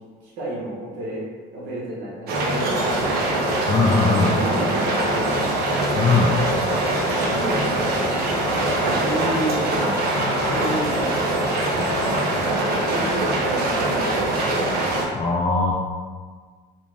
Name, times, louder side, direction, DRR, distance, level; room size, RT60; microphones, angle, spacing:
voice 1, 0.2-1.2 1.5-3.5 4.0-5.9 7.0-10.0 10.3-11.5 12.6-14.7, right 1 dB, 85° right, -6 dB, 0.9 m, -31 dB
sound 1, 2.3-15.1, right 1 dB, 65° right, 0.5 m, -23 dB
voice 2, 3.7-4.3 6.0-6.3 10.1-10.7 11.8-12.2 15.1-15.7, left 4 dB, 30° left, -2 dB, 0.3 m, -21 dB
2.5 x 2.3 x 3.2 m, 1.5 s
cardioid pair, 110°, 17 cm